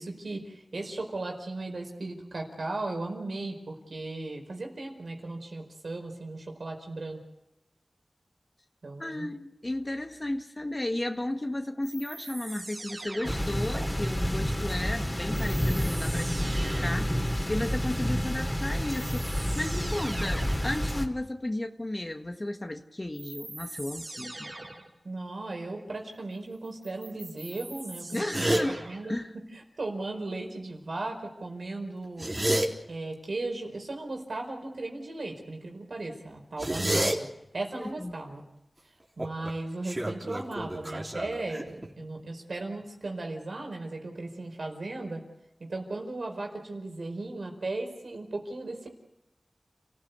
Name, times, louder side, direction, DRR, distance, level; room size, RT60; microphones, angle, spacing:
voice 1, 0.0-7.2 8.8-9.3 25.0-29.1 29.5-32.3 32.9-37.3 37.5-38.4 39.2-45.2 45.6-48.9, right 2 dB, 85° right, 3 dB, 4.8 m, -36 dB
voice 2, 9.0-24.5 28.1-29.3 37.8-38.1, left 1 dB, 35° left, 4 dB, 1.5 m, -34 dB
sound 1, 11.8-13.9 15.3-17.2 18.4-18.5 18.9-20.8 23.1-24.9 26.6-29.1, right 2 dB, 65° right, 4.3 m, -42 dB
sound 2, 13.2-21.1, equal, 20° left, 3.0 m, -29 dB
sound 3, 28.3-28.7 32.0-32.7 36.6-37.2 39.2-39.5 39.8-41.9, right 1 dB, 30° right, 3.6 m, -28 dB
30.0 x 15.5 x 8.2 m, 0.89 s
wide cardioid pair, 45°, 0 cm